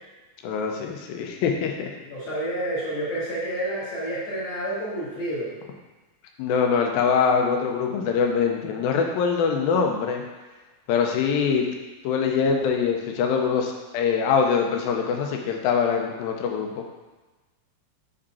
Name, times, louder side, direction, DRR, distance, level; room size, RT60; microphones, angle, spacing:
voice 1, 0.4-2.0 6.4-10.2 10.9-11.7 12.0-16.8, left 6 dB, 85° left, 2 dB, 2.5 m, -23 dB
voice 2, 2.0-5.5, right 1 dB, 50° left, -7 dB, 2.2 m, -29 dB
5.8 x 5.1 x 4.2 m, 1.2 s
omnidirectional pair, 4.2 m